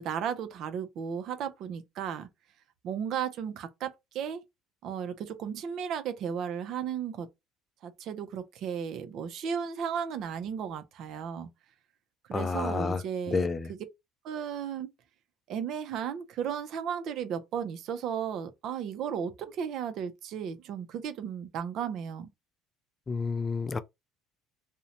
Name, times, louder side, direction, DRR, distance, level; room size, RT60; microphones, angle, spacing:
voice 1, 0.0-2.3 2.8-4.4 4.8-7.3 7.8-11.5 12.3-13.8 14.2-14.9 15.5-22.3, right 8 dB, 55° right, 0.5 m, -35 dB
voice 2, 12.3-13.0 13.3-13.7 23.1-23.8, left 4 dB, 25° left, 0.3 m, -29 dB
2.6 x 2.1 x 2.8 m
cardioid pair, 120°, 0 cm